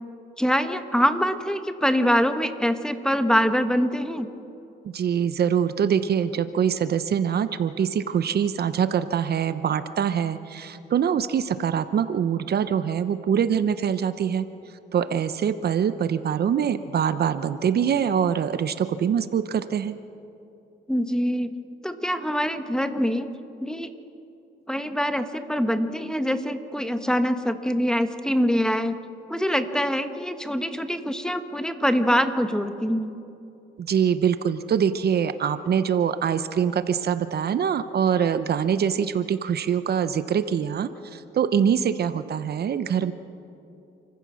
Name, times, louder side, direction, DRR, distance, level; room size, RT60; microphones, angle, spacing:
voice 1, 0.4-4.3 20.9-21.5 21.8-23.3 23.6-23.9 24.7-29.0 29.3-33.1, equal, 5° left, 9 dB, 1.2 m, -24 dB
voice 2, 4.8-14.5 14.9-19.9 33.8-43.1, right 8 dB, 55° right, 12 dB, 0.8 m, -24 dB
29.0 x 15.0 x 6.3 m, 2.8 s
cardioid pair, 90°, 20 cm